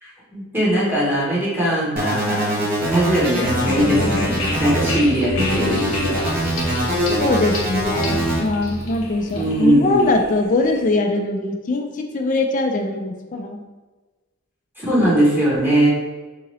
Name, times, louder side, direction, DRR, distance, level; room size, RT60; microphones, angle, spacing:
voice 1, 0.0-6.3 9.3-10.1 14.8-15.9, right 1 dB, 10° right, -8 dB, 0.9 m, -20 dB
sound 1, 2.0-5.0 5.4-8.4, equal, 45° right, 0.9 m, -23 dB
sound 2, 3.4-10.9, left 1 dB, 90° left, 0.8 m, -27 dB
voice 2, 7.2-13.6, left 2 dB, 35° left, 3 dB, 0.4 m, -21 dB
3.7 x 2.8 x 3.0 m, 1.3 s
head